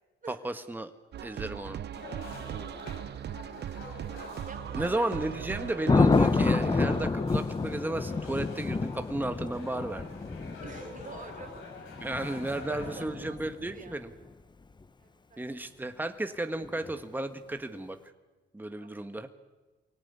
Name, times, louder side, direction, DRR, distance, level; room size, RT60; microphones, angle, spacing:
voice 1, 0.3-0.9 1.2-1.8 4.7-10.1 12.0-14.1 15.4-18.0 18.5-19.3, right 2 dB, 10° right, 8 dB, 1.5 m, -34 dB
sound 1, 1.1-7.1, right 10 dB, 60° right, 0.8 m, -39 dB
sound 2, 1.9-13.0, left 3 dB, 85° left, 6.5 m, -46 dB
voice 2, 2.5-3.0 3.6-3.8 4.4-5.1 10.6-11.8 12.7-14.0 15.0-15.4 18.7-19.0, right 4 dB, 40° right, 6 dB, 3.6 m, -48 dB
Thunder, 5.9-13.9 16.6-17.0, left 3 dB, 20° left, 1.1 m, -28 dB
24.0 x 17.5 x 9.7 m, 1.2 s
cardioid pair, 90°, 20 cm